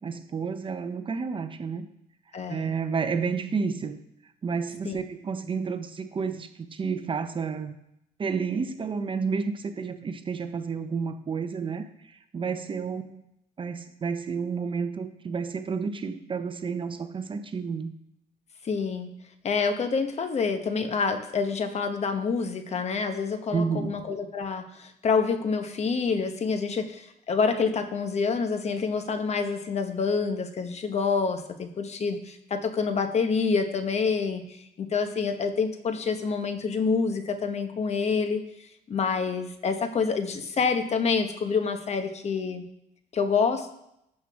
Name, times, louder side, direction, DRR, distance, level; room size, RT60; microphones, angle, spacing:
voice 1, 0.0-1.9 2.5-4.0 4.4-7.7 8.2-13.2 13.6-17.9 23.5-24.0, right 5 dB, 30° right, 9 dB, 0.7 m, -30 dB
voice 2, 2.3-2.7 4.8-5.0 18.6-19.1 19.4-38.4 38.9-42.6 43.1-43.7, left 5 dB, 40° left, 8 dB, 1.1 m, -27 dB
12.0 x 7.6 x 3.6 m, 0.80 s
cardioid pair, 110°, 17 cm